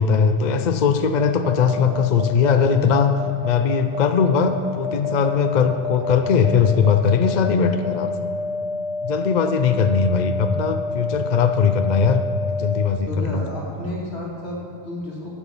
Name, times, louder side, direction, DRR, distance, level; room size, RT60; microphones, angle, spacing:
voice 1, 0.0-3.1 3.4-8.3 9.0-12.2 12.5-13.4, left 6 dB, 50° left, 7 dB, 0.6 m, -19 dB
sound 1, 1.2-12.9, left 3 dB, 35° left, 1.0 m, -28 dB
voice 2, 13.0-15.3, left 1 dB, 80° left, -4 dB, 2.8 m, -31 dB
11.0 x 7.0 x 7.1 m, 2.9 s
omnidirectional pair, 1.1 m